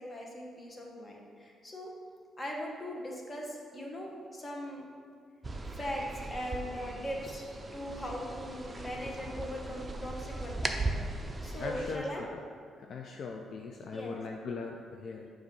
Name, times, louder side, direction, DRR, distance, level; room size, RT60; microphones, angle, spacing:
voice 1, 0.0-1.9 2.4-4.9 5.7-7.4 7.7-11.0 11.4-12.2 13.9-14.2, equal, 30° left, -1 dB, 1.1 m, -40 dB
sound 1, 5.4-12.0, right 2 dB, 25° right, 0.5 m, -38 dB
voice 2, 11.6-12.4 12.7-15.3, left 4 dB, 60° left, 1 dB, 0.4 m, -40 dB
6.9 x 2.6 x 5.3 m, 2.3 s
cardioid pair, 90°, 0 cm